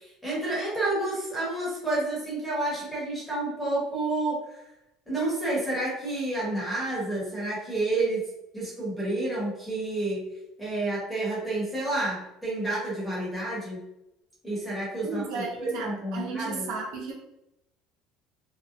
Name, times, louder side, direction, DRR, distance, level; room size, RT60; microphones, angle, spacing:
voice 1, 0.0-4.6 5.1-8.2 8.5-10.3 10.6-13.8 14.4-16.7, right 2 dB, 5° left, -7 dB, 1.1 m, -30 dB
voice 2, 15.0-17.1, right 4 dB, 65° right, -2 dB, 0.7 m, -34 dB
2.8 x 2.1 x 2.5 m, 0.87 s
cardioid pair, 170°, 0 cm